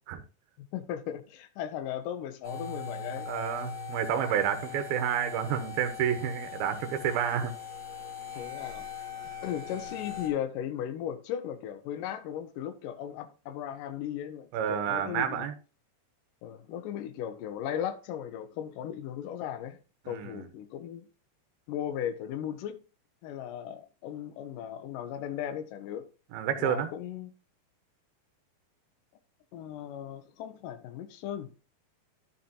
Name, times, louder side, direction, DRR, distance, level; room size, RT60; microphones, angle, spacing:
voice 1, 0.6-3.3 8.4-8.9 9.4-15.5 16.4-19.8 20.1-21.1 21.7-22.8 23.2-26.0 26.6-27.3 29.5-31.5, left 10 dB, 75° left, 2.1 m, -37 dB
sound 1, 2.4-10.3, left 5 dB, 5° left, 2.4 m, -40 dB
voice 2, 3.3-7.5 14.5-15.5 20.1-20.5 26.3-26.9, right 9 dB, 75° right, 2.8 m, -30 dB
11.5 x 6.7 x 2.8 m
omnidirectional pair, 4.5 m